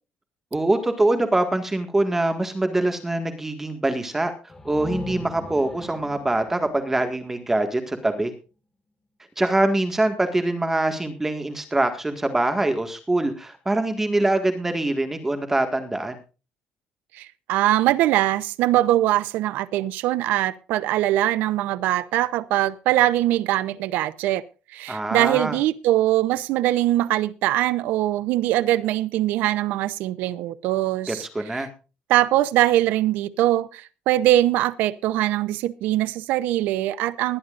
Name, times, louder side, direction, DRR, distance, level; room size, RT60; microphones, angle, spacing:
voice 1, 0.5-4.3 4.7-8.3 9.4-16.2 24.9-25.6 31.1-31.7, right 2 dB, 10° right, 1.8 m, -24 dB
sound 1, 4.5-8.2, left 2 dB, 15° left, 1.9 m, -40 dB
voice 2, 17.1-24.4 24.7-31.3 32.1-37.4, right 14 dB, 85° right, 0.7 m, -22 dB
20.5 x 11.0 x 2.5 m
cardioid pair, 135°, 3 cm